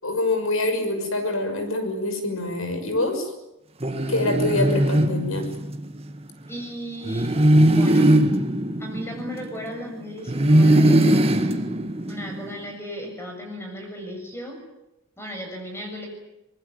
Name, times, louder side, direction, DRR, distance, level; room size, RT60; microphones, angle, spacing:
voice 1, 0.0-3.3 4.1-5.5, left 2 dB, 85° left, 7 dB, 6.1 m, -25 dB
sound 1, 3.8-5.9 7.1-9.8 10.3-12.5, right 1 dB, 30° right, 1.7 m, -20 dB
voice 2, 6.5-7.3 7.7-8.2 8.8-11.5 12.1-14.6 15.2-16.1, equal, 10° left, 2 dB, 7.5 m, -36 dB
24.5 x 21.0 x 9.7 m, 0.91 s
head